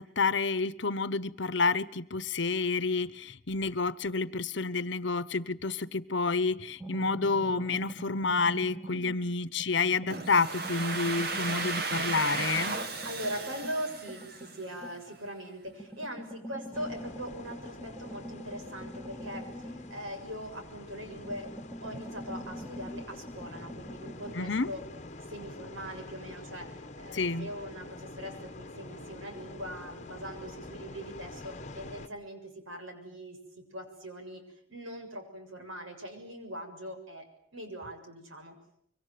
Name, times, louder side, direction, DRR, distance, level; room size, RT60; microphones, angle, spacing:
voice 1, 0.0-12.8 24.3-24.7 27.1-27.5, left 4 dB, 60° left, 1.0 m, -29 dB
sound 1, 6.8-9.3 9.6-15.2 15.7-20.7 21.0-24.4, equal, 10° right, 1.9 m, -44 dB
voice 2, 8.9-9.3 12.9-21.5 21.8-24.8 25.3-34.4 34.7-37.3 37.5-38.6, equal, 80° right, 7.0 m, -41 dB
Domestic sounds home sounds, 10.1-14.9, right 3 dB, 50° right, 2.2 m, -35 dB
sound 2, 16.7-32.1, left 2 dB, 35° left, 1.3 m, -46 dB
25.0 x 24.0 x 9.3 m
head